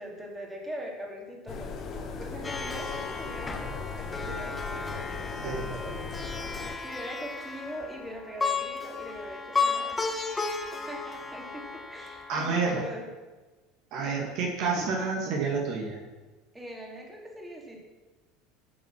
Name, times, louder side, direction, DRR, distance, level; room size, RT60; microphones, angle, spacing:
voice 1, 0.0-6.4 6.8-10.0 10.4-13.1 14.0-14.4 16.5-17.8, equal, 15° right, -1 dB, 2.8 m, -42 dB
sound 1, 1.5-6.8, left 5 dB, 40° left, 1.3 m, -38 dB
Plucked string instrument, 2.4-12.8, left 4 dB, 20° left, 1.4 m, -34 dB
voice 2, 12.3-12.8 13.9-16.0, right 4 dB, 55° right, 0 dB, 2.2 m, -29 dB
11.0 x 6.8 x 6.1 m, 1.2 s
hypercardioid pair, 75°, 0 cm